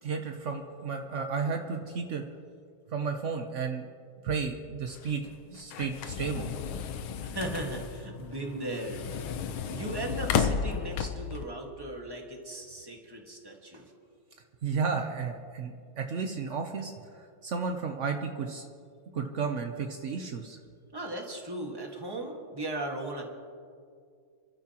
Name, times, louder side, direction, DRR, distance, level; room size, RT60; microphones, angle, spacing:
voice 1, 0.0-2.3 2.9-3.9 4.2-6.5 6.9-7.0 14.6-18.7 19.1-20.6, right 5 dB, 80° right, 4 dB, 0.6 m, -33 dB
sound 1, 4.9-11.4, left 7 dB, 80° left, 1.6 m, -33 dB
voice 2, 7.2-9.2 9.7-13.9 20.9-23.2, right 1 dB, 15° right, 1 dB, 1.4 m, -37 dB
29.5 x 12.0 x 2.9 m, 2.3 s
omnidirectional pair, 2.3 m